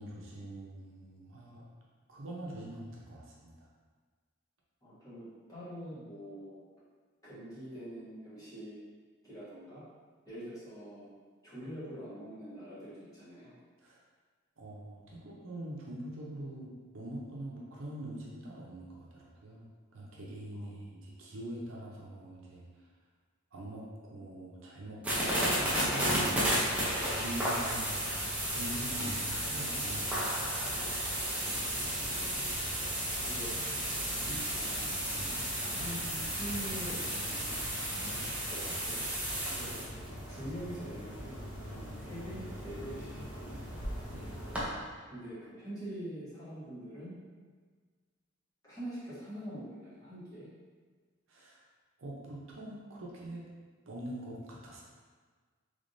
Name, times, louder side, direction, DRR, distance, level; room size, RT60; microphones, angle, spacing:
voice 1, 0.0-1.6 2.1-3.7 13.8-14.0 14.6-22.9 23.5-26.9 27.1-28.1 28.5-30.5 35.1-35.3 39.4-39.7 44.1-44.5 51.3-51.6 52.0-53.5 53.9-54.8, right 1 dB, 70° right, -4 dB, 0.7 m, -44 dB
voice 2, 4.8-6.6 7.2-8.8 9.2-9.8 10.2-11.1 11.4-13.6 20.5-20.8 31.4-32.6 33.2-33.5 34.2-39.1 39.6-39.8 40.3-41.4 41.7-44.0 45.1-47.2 48.6-50.5, equal, 15° left, -12 dB, 1.4 m, -45 dB
sound 1, 25.0-44.7, equal, 5° right, 0.6 m, -34 dB
3.4 x 3.4 x 2.6 m, 1.5 s
head